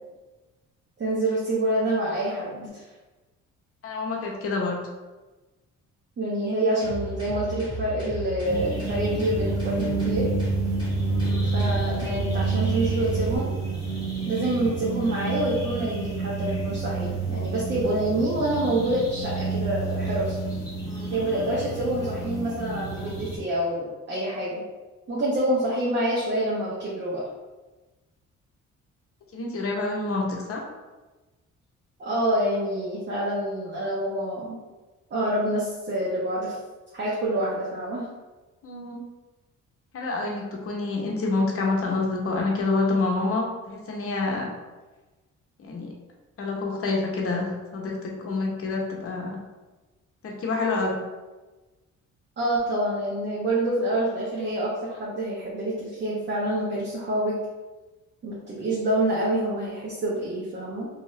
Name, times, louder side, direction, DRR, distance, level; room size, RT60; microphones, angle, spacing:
voice 1, 1.0-2.8 6.2-10.3 11.5-13.5 14.3-20.4 21.0-24.6 25.1-27.2 32.0-34.6 35.1-36.6 36.9-38.1 52.4-57.4 58.2-60.9, right 1 dB, 40° right, -6 dB, 0.7 m, -27 dB
voice 2, 3.8-4.8 29.3-30.6 38.6-39.0 39.9-44.5 45.6-45.9 46.4-49.4 50.2-51.0, left 3 dB, 50° left, -1 dB, 0.8 m, -27 dB
sound 1, 6.8-13.4, right 1 dB, 15° right, 1.5 m, -34 dB
sound 2, 8.4-23.4, right 4 dB, 10° left, 1.0 m, -29 dB
2.7 x 2.3 x 3.1 m, 1.2 s
cardioid pair, 90°, 30 cm